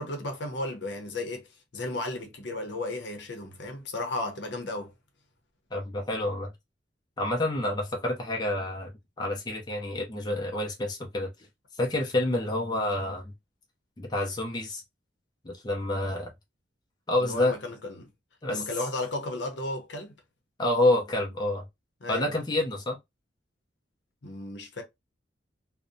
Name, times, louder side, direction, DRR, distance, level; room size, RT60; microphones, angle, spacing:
voice 1, 0.0-1.5 1.7-4.9 17.2-18.1 18.5-20.1 22.0-22.4 24.2-24.8, left 2 dB, 65° left, 0.7 m, -34 dB
voice 2, 5.7-6.5 7.2-8.9 9.2-11.3 11.8-13.2 14.0-14.8 15.4-16.3 17.1-17.6 18.4-18.6 20.6-21.6 22.1-23.0, left 1 dB, 20° left, 0.5 m, -28 dB
2.6 x 2.1 x 2.5 m
head